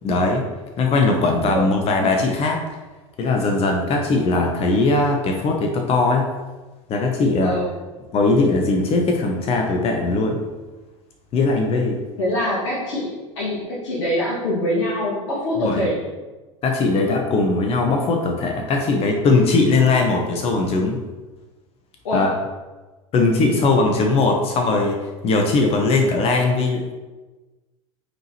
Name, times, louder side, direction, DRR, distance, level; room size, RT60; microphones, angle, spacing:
voice 1, 0.0-0.5 0.8-2.6 3.2-6.3 6.9-7.6 8.1-10.4 11.3-12.0 15.5-15.8 16.6-21.0 22.1-22.3 23.1-26.9, left 3 dB, 35° left, 2 dB, 1.1 m, -19 dB
voice 2, 7.4-7.7 12.2-16.1 22.0-22.3, left 1 dB, 65° left, -7 dB, 2.3 m, -24 dB
9.0 x 4.8 x 3.1 m, 1.2 s
figure-of-eight pair, 80°, 17 cm